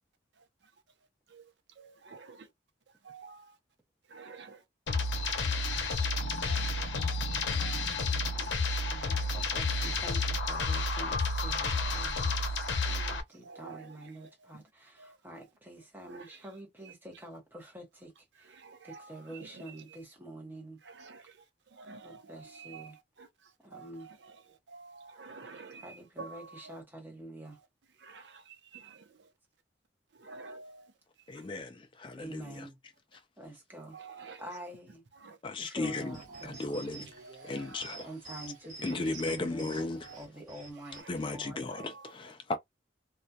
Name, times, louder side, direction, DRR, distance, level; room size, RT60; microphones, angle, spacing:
voice 1, 1.8-2.5 3.0-3.6 4.1-4.6 5.0-5.2 6.0-8.3 9.1-9.3 10.5-11.0 13.4-14.1 15.0-15.2 16.0-16.2 18.6-19.6 20.9-21.4 21.7-23.3 23.7-24.1 24.7-25.9 26.2-26.8 28.0-29.2 30.2-30.9 31.3-31.4 33.9-34.4 35.2-35.4 35.8-36.0 36.3-36.6 37.2-38.5 38.9-39.0 40.0-40.2 40.9-41.2 41.7-42.1, right 4 dB, 70° right, 0.6 m, -49 dB
sound 1, 4.9-13.2, left 3 dB, 80° left, 0.6 m, -31 dB
voice 2, 8.2-20.8 22.0-23.0 23.6-24.1 25.8-27.6 31.7-31.8 32.2-32.8 33.4-34.0 34.4-35.0 35.6-37.1 38.0-39.8 40.1-41.6, right 1 dB, 10° right, 0.8 m, -47 dB
voice 3, 31.3-32.7 35.4-36.2 36.4-37.0 37.4-38.1 38.8-40.1 41.1-42.6, left 2 dB, 25° left, 0.3 m, -35 dB
sound 2, 35.8-41.0, right 2 dB, 45° right, 1.2 m, -50 dB
2.3 x 2.1 x 2.6 m
head